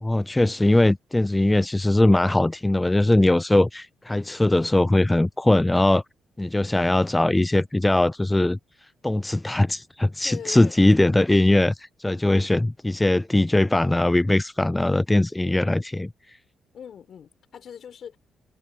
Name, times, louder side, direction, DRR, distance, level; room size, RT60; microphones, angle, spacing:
voice 1, 0.0-6.0 6.4-8.6 9.0-16.4, left 1 dB, 10° left, 0.3 m, -20 dB
voice 2, 10.2-10.8 16.7-18.2, left 8 dB, 60° left, 5.4 m, -40 dB
cardioid pair, 90°, 0 cm